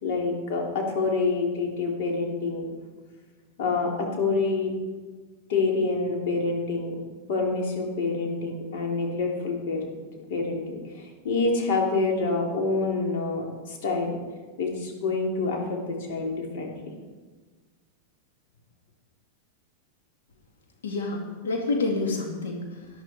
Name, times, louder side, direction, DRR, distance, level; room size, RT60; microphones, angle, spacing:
voice 1, 0.0-2.7 3.6-4.7 5.5-6.9 7.3-9.8 10.3-14.2 14.6-16.9, left 3 dB, 65° left, 0 dB, 3.4 m, -27 dB
voice 2, 20.8-22.9, left 3 dB, 85° left, 1 dB, 2.5 m, -28 dB
12.0 x 11.0 x 4.5 m, 1.4 s
hypercardioid pair, 125°, 0 cm